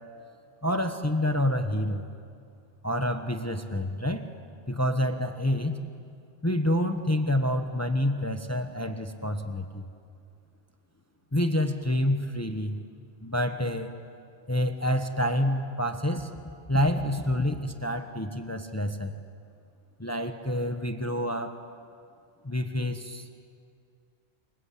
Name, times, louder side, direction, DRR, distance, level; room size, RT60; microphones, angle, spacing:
voice 1, 0.6-2.1 2.8-4.3 4.7-5.8 6.4-9.9 11.3-12.8 13.2-13.9 14.5-16.3 16.7-19.2 20.0-21.6 22.4-23.3, left 1 dB, 15° left, 6 dB, 1.1 m, -28 dB
29.0 x 24.5 x 8.5 m, 2.3 s
omnidirectional pair, 1.1 m